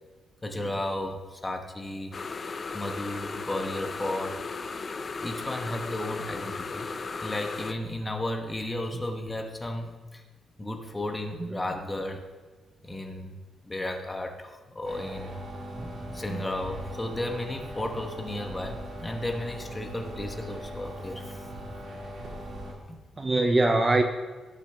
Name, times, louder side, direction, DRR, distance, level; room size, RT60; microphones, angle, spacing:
voice 1, 0.4-2.2 2.7-4.4 5.2-6.9 7.2-10.2 10.6-12.3 12.8-13.4 13.6-15.4 16.1-21.4 22.9-23.0, left 1 dB, 15° left, 3 dB, 1.1 m, -34 dB
sound 1, 2.1-7.7, left 4 dB, 30° left, 0.5 m, -36 dB
sound 2, 14.8-22.7, equal, 65° right, 3.2 m, -40 dB
voice 2, 23.2-24.0, right 2 dB, 20° right, 6 dB, 0.5 m, -24 dB
17.5 x 6.7 x 3.4 m, 1.3 s
cardioid pair, 155°, 0 cm